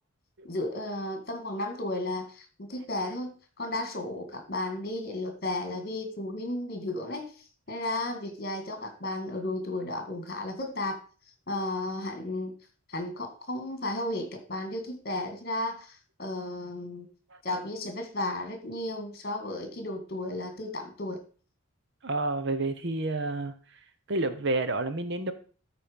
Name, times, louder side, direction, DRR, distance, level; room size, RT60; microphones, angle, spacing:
voice 1, 0.4-3.3 3.6-11.0 11.5-12.5 12.9-17.1 17.4-21.2, left 1 dB, 45° left, 6 dB, 2.0 m, -34 dB
voice 2, 22.0-23.5 24.1-25.3, right 2 dB, 50° right, 11 dB, 0.8 m, -29 dB
13.0 x 4.5 x 5.2 m, 0.39 s
head